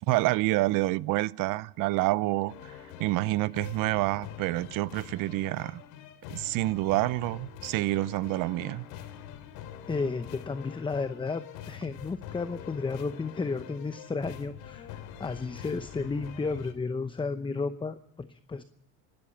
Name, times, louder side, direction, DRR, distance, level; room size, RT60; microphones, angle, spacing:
voice 1, 0.0-2.7 3.0-5.8 6.3-8.8, right 18 dB, 60° right, 0.7 m, -28 dB
sound 1, 2.5-16.7, left 10 dB, 75° left, 3.0 m, -45 dB
voice 2, 9.9-18.6, left 4 dB, 15° left, 0.8 m, -33 dB
27.5 x 12.5 x 9.0 m
supercardioid pair, 105°, 37 cm